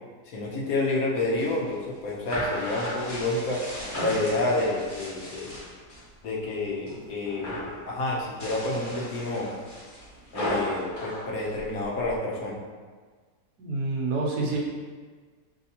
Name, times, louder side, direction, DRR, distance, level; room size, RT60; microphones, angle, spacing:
voice 1, 0.3-3.6 4.0-5.5 6.2-9.5 10.3-12.6, left 2 dB, 65° left, -3 dB, 1.2 m, -29 dB
sound 1, 1.2-6.1 6.4-7.0 7.3-7.8 8.3-12.1, left 1 dB, 35° left, 1.4 m, -35 dB
voice 2, 13.6-14.6, right 3 dB, 80° right, -2 dB, 1.4 m, -27 dB
5.6 x 3.4 x 2.8 m, 1.5 s
omnidirectional pair, 1.7 m